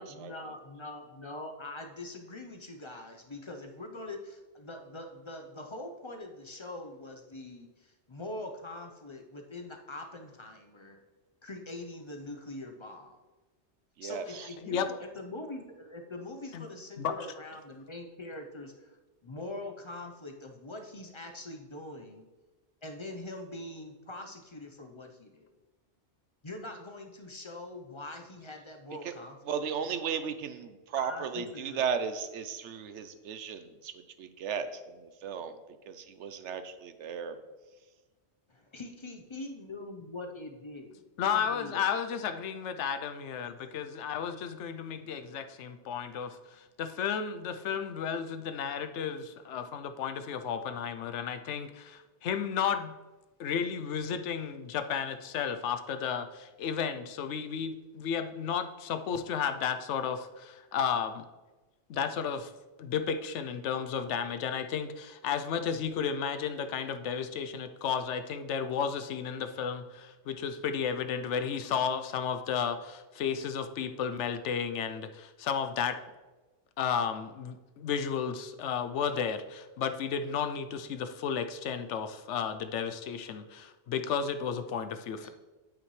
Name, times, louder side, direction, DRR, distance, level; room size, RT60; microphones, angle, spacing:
voice 1, 0.0-11.0 11.4-13.2 14.0-22.3 22.8-25.6 26.4-29.6 31.0-31.8 38.5-41.8 85.2-85.3, left 2 dB, 30° left, 3 dB, 0.7 m, -43 dB
voice 2, 14.0-14.5 29.0-29.1 29.5-33.9 34.2-35.6 35.9-37.4, right 7 dB, 80° right, 11 dB, 1.0 m, -35 dB
voice 3, 41.2-52.9 53.4-61.2 61.9-62.5 62.8-76.0 76.8-85.3, left 7 dB, 75° left, 9 dB, 0.9 m, -33 dB
8.6 x 8.4 x 3.2 m, 1.2 s
omnidirectional pair, 1.2 m